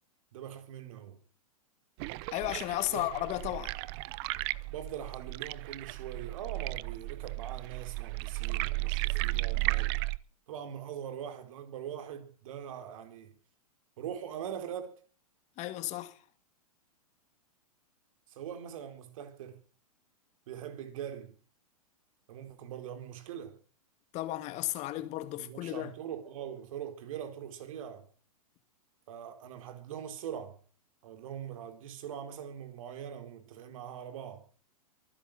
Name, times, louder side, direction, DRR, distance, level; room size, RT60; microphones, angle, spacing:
voice 1, 0.3-1.2 2.9-3.0 4.7-10.0 10.5-13.3 14.0-14.9 18.3-19.6 20.5-21.3 22.3-23.6 25.4-28.1 29.1-30.6 31.0-34.4, right 9 dB, 60° right, 3.9 m, -42 dB
sound 1, 2.0-10.2, right 25 dB, 45° right, 0.7 m, -34 dB
voice 2, 2.3-3.8 15.6-16.2 24.1-25.9, left 15 dB, 35° left, 2.2 m, -34 dB
23.5 x 10.5 x 6.0 m
hypercardioid pair, 120°, 19 cm